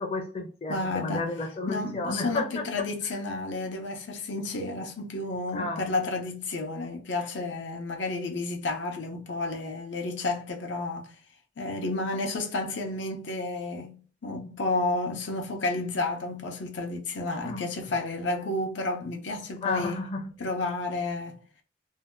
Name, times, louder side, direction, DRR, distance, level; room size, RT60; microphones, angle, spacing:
voice 1, 0.0-2.9 5.5-5.9 17.4-17.7 19.6-20.3, left 3 dB, 30° left, 0.5 m, -32 dB
voice 2, 0.7-1.3 1.7-11.1 11.6-20.0 20.4-21.4, left 2 dB, 85° left, 0.7 m, -31 dB
2.7 x 2.2 x 3.5 m
head